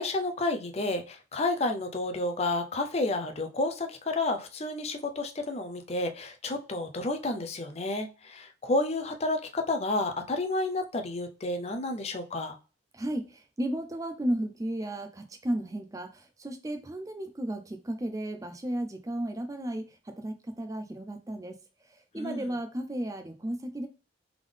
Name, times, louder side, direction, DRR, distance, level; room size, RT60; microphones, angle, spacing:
voice 1, 0.0-12.6 22.2-22.5, left 2 dB, 35° left, 6 dB, 0.5 m, -30 dB
voice 2, 12.9-21.6 22.1-23.9, right 1 dB, 20° right, 6 dB, 0.4 m, -34 dB
3.6 x 3.6 x 3.4 m, 0.33 s
head